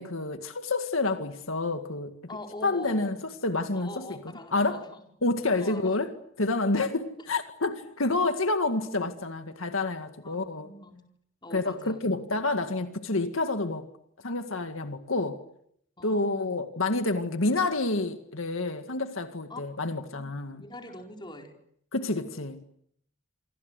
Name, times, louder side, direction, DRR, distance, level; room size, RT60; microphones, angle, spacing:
voice 1, 0.0-2.1 2.6-3.2 3.4-4.1 4.5-4.8 5.2-6.1 6.4-10.7 11.5-13.9 14.2-15.4 16.0-20.6 21.9-22.6, left 2 dB, 80° left, 2.0 m, -28 dB
voice 2, 2.3-3.2 3.7-5.0 5.6-6.0 8.1-8.2 10.2-11.1 11.4-12.1 16.0-16.5 19.5-19.6 20.1-21.5, left 1 dB, 20° left, 4.7 m, -43 dB
27.5 x 25.0 x 8.2 m
head